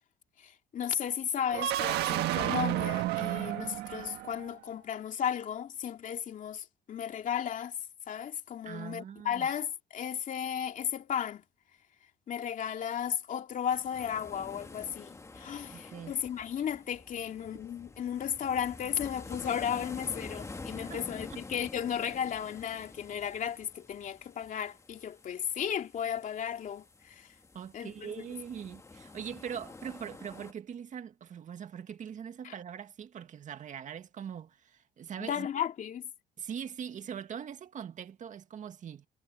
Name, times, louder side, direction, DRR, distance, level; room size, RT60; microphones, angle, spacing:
voice 1, 0.4-7.8 8.1-11.4 12.3-27.3 27.7-28.1 32.4-32.5 35.2-36.1, left 9 dB, 50° left, 2.6 m, -34 dB
sound 1, 1.5-4.5, right 14 dB, 80° right, 1.5 m, -31 dB
voice 2, 8.6-9.5 15.7-16.2 20.9-21.0 21.3-21.4 27.5-35.5 36.4-39.1, right 8 dB, 45° right, 2.1 m, -42 dB
sound 2, 13.7-30.5, left 3 dB, 15° left, 1.9 m, -48 dB
cardioid pair, 110°, 17 cm